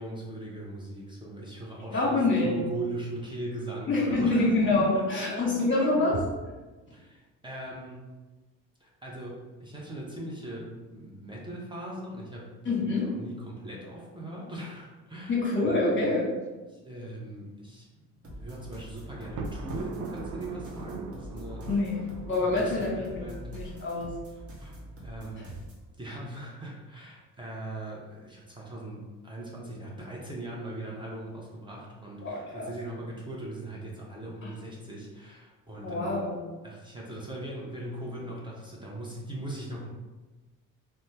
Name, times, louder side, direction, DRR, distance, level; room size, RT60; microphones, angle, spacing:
voice 1, 0.0-5.5 5.8-6.1 6.9-8.2 8.8-16.0 16.7-17.9 18.4-21.7 22.4-23.9 24.6-25.5 26.0-36.1 36.6-39.9, right 1 dB, 15° right, -4 dB, 0.7 m, -40 dB
voice 2, 1.9-2.5 3.9-6.2 12.6-13.1 15.3-16.3 21.7-23.2 23.5-24.1 32.2-32.7 34.4-34.5 35.7-36.4, left 2 dB, 35° left, -3 dB, 1.1 m, -26 dB
sound 1, 18.2-25.9, equal, 45° right, 0.9 m, -44 dB
Thunder, 19.2-23.3, right 4 dB, 65° right, 0.5 m, -40 dB
2.6 x 2.1 x 3.3 m, 1.2 s
cardioid pair, 85°, 33 cm